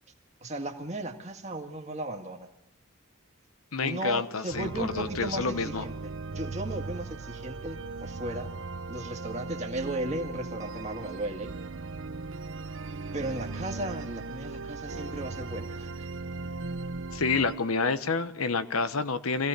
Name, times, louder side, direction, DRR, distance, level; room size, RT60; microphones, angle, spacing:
voice 1, 0.4-2.5 3.8-8.5 8.9-11.5 13.1-16.1, right 1 dB, 30° right, 4 dB, 1.9 m, -36 dB
voice 2, 3.7-5.8 17.1-19.5, left 4 dB, 90° left, 12 dB, 1.1 m, -28 dB
sound 1, 4.5-17.5, right 3 dB, 65° right, 0.7 m, -38 dB
25.5 x 16.0 x 6.8 m, 0.80 s
head